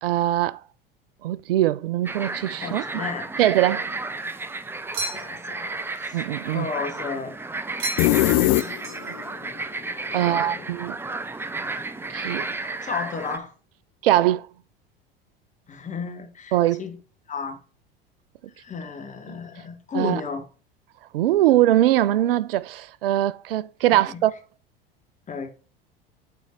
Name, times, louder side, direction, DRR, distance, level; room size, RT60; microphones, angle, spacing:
voice 1, 0.0-0.6 1.2-2.8 3.4-3.9 6.1-6.7 8.3-8.4 9.0-9.2 10.1-11.0 12.1-12.8 14.0-14.5 16.5-16.8 19.9-20.2 21.1-24.3, right 13 dB, 70° right, 0.4 m, -22 dB
sound 1, 2.0-13.4, right 3 dB, 10° right, 0.5 m, -33 dB
voice 2, 2.6-3.3 5.1-7.4 8.2-9.0 10.1-10.6 12.8-13.5 15.7-17.0 17.3-17.6 18.6-20.5 23.9-24.2 25.3-25.5, left 5 dB, 25° left, 1.6 m, -34 dB
sound 2, 4.9-5.6 7.8-8.3 8.6-9.3, right 2 dB, 45° right, 3.2 m, -33 dB
sound 3, 8.0-9.2, left 18 dB, 45° left, 0.4 m, -20 dB
8.3 x 4.3 x 4.5 m
figure-of-eight pair, 75°, 29 cm